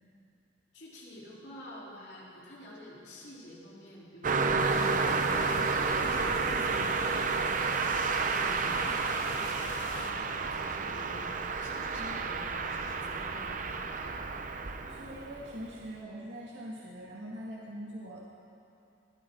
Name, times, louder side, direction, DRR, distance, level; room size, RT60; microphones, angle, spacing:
voice 1, 0.7-4.7 5.2-7.7 8.0-13.6, left 1 dB, 65° left, -6 dB, 3.9 m, -48 dB
Car passing by, 4.2-15.7, right 4 dB, 45° right, 0.7 m, -31 dB
sound 1, 4.6-10.1, left 2 dB, 90° left, 1.6 m, -43 dB
voice 2, 14.8-18.2, equal, 75° right, -5 dB, 2.0 m, -43 dB
21.0 x 16.0 x 3.9 m, 2.7 s
head